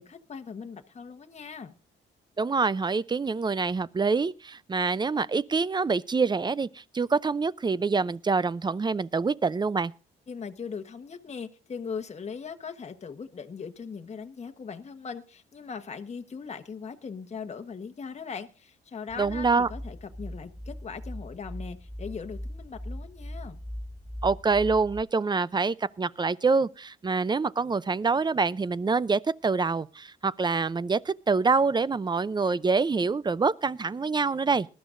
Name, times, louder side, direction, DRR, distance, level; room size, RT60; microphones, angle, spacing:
voice 1, 0.0-1.7 10.3-23.6, left 6 dB, 35° left, 1.2 m, -39 dB
voice 2, 2.4-9.9 19.2-19.7 24.2-34.7, right 4 dB, 20° right, 0.5 m, -26 dB
sound 1, 19.1-25.0, equal, 5° right, 3.5 m, -40 dB
20.0 x 12.5 x 2.6 m
cardioid pair, 90°, 20 cm